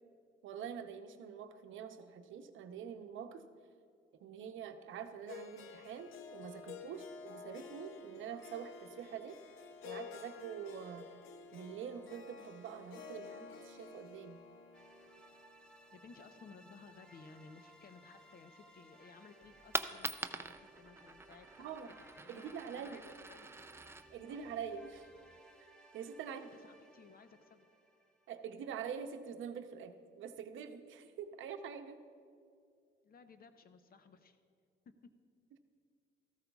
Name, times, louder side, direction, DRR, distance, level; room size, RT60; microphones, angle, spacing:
voice 1, 0.4-3.4 4.2-9.4 9.8-11.1 11.5-14.4 21.6-21.9 22.3-23.0 24.1-25.1 25.6-25.7 25.9-26.5 28.3-32.0, right 7 dB, 80° right, 8 dB, 0.7 m, -45 dB
Harp, 5.3-17.4, left 5 dB, 85° left, 0.7 m, -52 dB
sound 1, 14.7-29.0, right 1 dB, 5° left, 1.2 m, -62 dB
voice 2, 15.9-23.5 24.3-24.6 26.3-27.7 33.0-34.4 34.9-35.1, left 5 dB, 50° left, 10 dB, 0.8 m, -58 dB
Coin (dropping), 19.4-25.4, right 2 dB, 10° right, 0.4 m, -45 dB
14.0 x 13.5 x 2.4 m, 2.3 s
cardioid pair, 90°, 20 cm